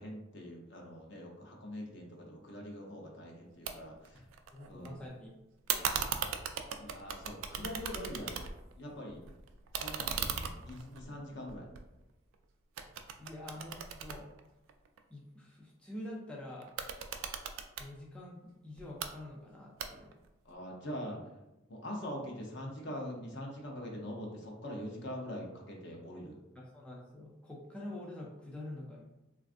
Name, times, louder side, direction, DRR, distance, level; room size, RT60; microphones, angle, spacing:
voice 1, 0.0-4.2 4.7-4.9 5.7-6.3 6.8-8.4 8.7-9.2 9.8-11.7 20.4-21.2 21.7-26.4, equal, 60° left, 0 dB, 0.6 m, -43 dB
sound 1, 3.7-3.8 4.0-4.9 5.7-8.7 9.1-12.3 12.8-15.0 16.6-17.9 18.8-19.1 19.8-20.3, right 7 dB, 80° right, 0.3 m, -38 dB
voice 2, 4.5-5.4 10.3-10.5 13.2-14.3 15.1-16.7 17.8-18.4 18.6-20.2 26.6-29.0, left 1 dB, 5° left, -3 dB, 0.3 m, -46 dB
3.3 x 2.4 x 2.4 m, 0.97 s
head